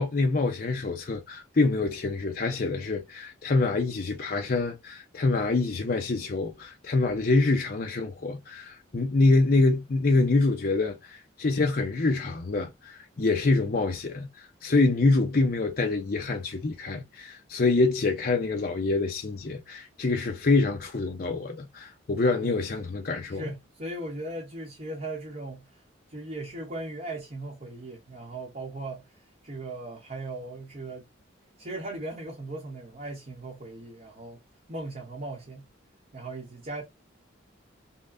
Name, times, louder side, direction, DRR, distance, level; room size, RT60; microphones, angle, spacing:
voice 1, 0.0-23.4, left 3 dB, 50° left, 0.6 m, -26 dB
voice 2, 23.3-25.8 26.1-31.1 31.6-34.4 34.7-35.7 36.1-36.8, right 2 dB, 40° right, 0.9 m, -38 dB
5.5 x 2.2 x 2.5 m
head